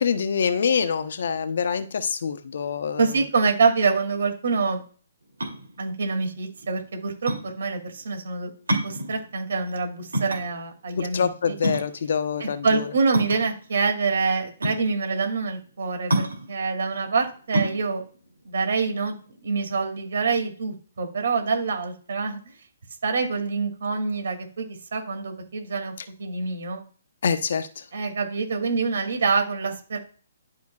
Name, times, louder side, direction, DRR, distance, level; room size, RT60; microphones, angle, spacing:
voice 1, 0.0-3.2 10.9-12.9 27.2-27.8, left 6 dB, 65° left, 10 dB, 1.0 m, -25 dB
voice 2, 3.0-4.8 5.8-8.5 8.8-11.6 12.4-18.0 18.4-19.2 19.4-22.4 23.0-25.9 26.2-26.8 27.9-30.0, right 4 dB, 70° right, 4 dB, 2.6 m, -26 dB
sound 1, 5.2-19.6, right 1 dB, 90° right, 2.8 m, -30 dB
12.0 x 5.1 x 2.4 m, 0.41 s
hypercardioid pair, 140°, 0 cm